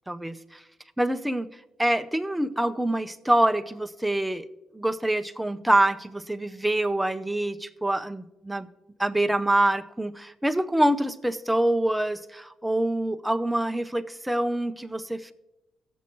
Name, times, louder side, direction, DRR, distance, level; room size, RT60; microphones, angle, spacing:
voice 1, 0.1-0.6 1.0-1.5 1.8-4.5 4.7-8.7 9.0-15.3, right 1 dB, 5° right, 9 dB, 0.6 m, -25 dB
17.0 x 7.1 x 3.0 m, 0.96 s
cardioid pair, 90°, 0 cm